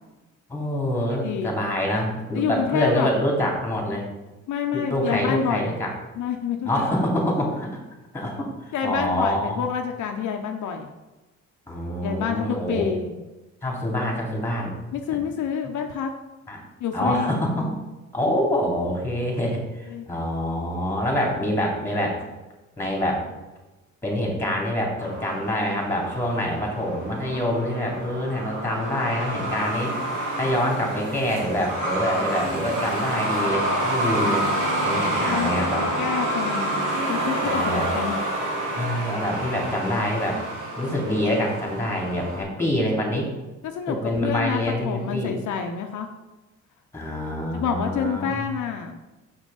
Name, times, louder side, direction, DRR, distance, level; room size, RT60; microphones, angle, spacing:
voice 1, 0.5-4.1 4.7-5.9 6.6-7.8 8.1-9.6 11.7-12.9 13.6-15.0 15.6-15.7 16.5-16.6 16.9-17.7 18.1-22.2 22.8-23.2 24.0-29.9 30.4-34.4 34.8-35.8 37.4-37.9 38.8-40.4 40.8-43.3 43.9-45.4 46.9-48.3, equal, 10° left, -1 dB, 2.6 m, -26 dB
voice 2, 1.2-1.5 2.3-3.1 4.5-5.7 6.2-6.7 8.7-10.9 12.0-13.2 14.9-16.1 16.8-17.4 19.9-20.1 35.2-36.8 37.1-38.2 43.6-46.1 47.5-49.0, left 7 dB, 75° left, 4 dB, 0.8 m, -28 dB
Truck, 25.0-42.4, right 1 dB, 85° right, 1.9 m, -28 dB
6.5 x 6.3 x 4.0 m, 1.1 s
cardioid pair, 90°, 30 cm